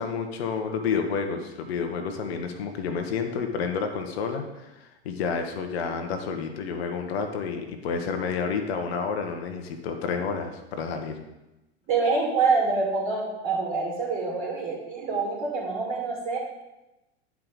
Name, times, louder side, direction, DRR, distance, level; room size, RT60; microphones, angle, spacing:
voice 1, 0.0-11.2, left 5 dB, 65° left, 5 dB, 1.1 m, -30 dB
voice 2, 11.9-16.4, right 4 dB, 40° right, -5 dB, 2.8 m, -26 dB
9.8 x 4.7 x 3.9 m, 0.98 s
hypercardioid pair, 90°, 33 cm